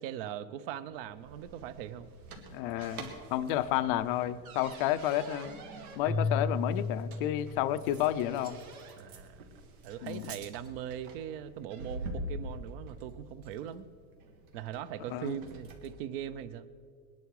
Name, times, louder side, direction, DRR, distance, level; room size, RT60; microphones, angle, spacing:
voice 1, 0.0-2.1 9.0-9.4 9.8-13.9 14.5-16.7, right 10 dB, 40° right, 15 dB, 0.6 m, -40 dB
sound 1, 0.9-16.0, right 1 dB, 80° right, 2.3 m, -46 dB
voice 2, 2.4-5.6 6.0-8.6 10.0-10.3 15.1-15.4, left 12 dB, 40° left, 12 dB, 0.5 m, -31 dB
Keyboard (musical), 6.0-8.3, left 3 dB, 5° left, 0.7 m, -34 dB
21.5 x 10.5 x 4.7 m, 2.2 s
supercardioid pair, 170°, 43 cm